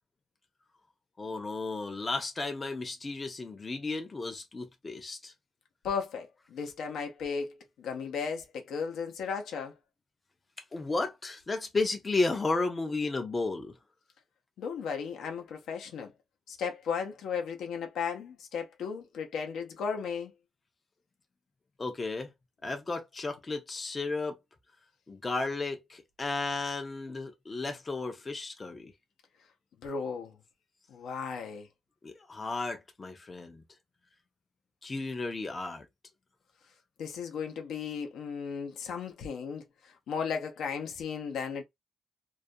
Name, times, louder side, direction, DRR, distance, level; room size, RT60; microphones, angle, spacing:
voice 1, 1.2-5.3 10.7-13.7 21.8-22.3 22.6-24.4 25.1-28.9 32.0-33.6 34.8-35.9, left 3 dB, 20° left, 0.4 m, -33 dB
voice 2, 5.8-9.7 14.6-16.1 16.5-20.3 29.8-30.3 30.9-31.7 37.0-41.6, left 6 dB, 80° left, 0.5 m, -35 dB
2.3 x 2.1 x 2.6 m
wide cardioid pair, 175°, 0 cm